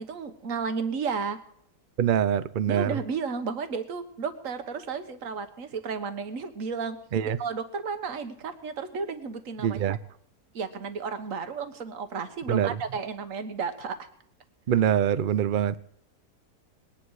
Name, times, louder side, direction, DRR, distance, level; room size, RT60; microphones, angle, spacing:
voice 1, 0.0-1.4 2.7-7.0 7.2-10.0 10.5-14.1, right 5 dB, 55° right, 1.6 m, -33 dB
voice 2, 2.0-3.0 7.1-7.4 9.6-10.0 12.5-12.7 14.7-15.8, right 9 dB, 75° right, 0.4 m, -24 dB
20.5 x 10.5 x 4.8 m
omnidirectional pair, 1.8 m